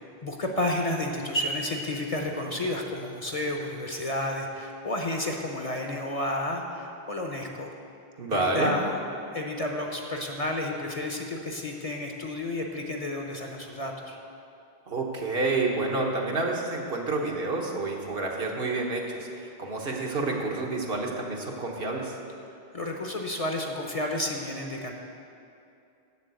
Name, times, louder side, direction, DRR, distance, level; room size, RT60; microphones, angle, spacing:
voice 1, 0.2-7.7 8.3-9.0 9.3-14.2 22.7-24.9, left 1 dB, 40° left, 2 dB, 0.8 m, -31 dB
voice 2, 8.2-8.7 14.9-22.2, right 3 dB, 65° right, 0 dB, 1.4 m, -29 dB
7.4 x 7.1 x 8.2 m, 2.6 s
omnidirectional pair, 1.1 m